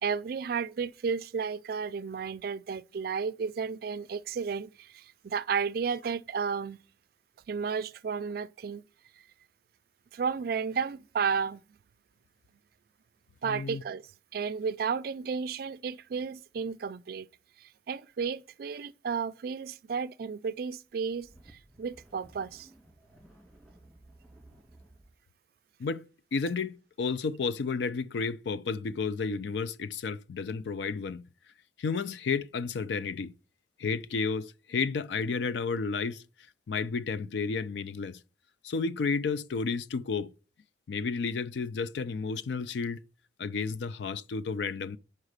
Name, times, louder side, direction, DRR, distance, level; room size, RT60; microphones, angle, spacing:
voice 1, 0.0-6.8 7.5-8.8 10.1-11.6 13.4-17.3 17.6-22.7, right 6 dB, 55° right, 0.3 m, -33 dB
voice 2, 13.4-13.8 25.8-31.2 31.8-33.3 33.8-36.2 36.7-38.2 38.6-40.3 40.9-43.0 43.4-45.0, left 4 dB, 70° left, 0.4 m, -32 dB
sound 1, 20.9-25.2, right 1 dB, 10° left, 2.0 m, -57 dB
5.5 x 4.9 x 6.4 m
head